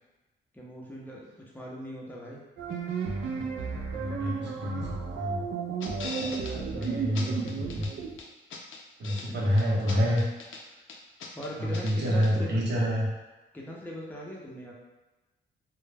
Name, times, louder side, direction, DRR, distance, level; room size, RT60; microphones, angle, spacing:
voice 1, 0.5-2.4 6.3-7.4 9.3-9.7 10.8-10.9 11.3-12.7 13.5-14.7, equal, 10° left, -3 dB, 0.5 m, -41 dB
sound 1, 2.6-8.2, right 5 dB, 80° right, 0.4 m, -33 dB
voice 2, 3.9-5.4 6.4-7.9 9.0-10.2 11.6-13.1, equal, 60° right, -4 dB, 0.8 m, -28 dB
sound 2, 5.8-6.5 6.8-6.9 7.1-7.9 8.2-9.3 9.6-10.6 10.9-12.0 12.2-12.3, left 4 dB, 75° left, 0.4 m, -40 dB
2.2 x 2.1 x 3.2 m, 1.1 s
wide cardioid pair, 120°, 20 cm